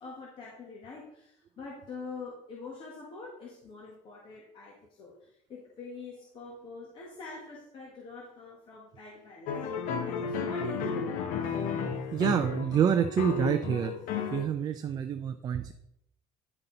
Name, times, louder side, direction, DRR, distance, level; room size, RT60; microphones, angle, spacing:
voice 1, 0.0-9.5 10.0-11.3, left 3 dB, 40° left, -3 dB, 1.6 m, -45 dB
sound 1, 9.5-14.5, left 5 dB, 85° left, 1.1 m, -33 dB
voice 2, 12.1-13.9 14.3-15.7, right 8 dB, 30° right, 8 dB, 0.4 m, -27 dB
9.9 x 5.7 x 3.9 m, 0.74 s
cardioid pair, 180°, 14 cm